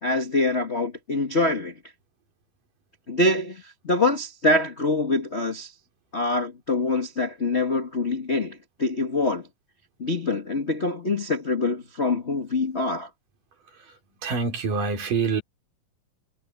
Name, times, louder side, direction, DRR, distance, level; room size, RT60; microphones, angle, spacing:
voice 1, 0.0-1.7 3.1-5.7 6.1-9.5 10.0-13.1, left 2 dB, 40° left, 0.9 m, -25 dB
voice 2, 14.2-15.4, right 5 dB, 70° right, 5.3 m, -25 dB
omnidirectional pair, 4.0 m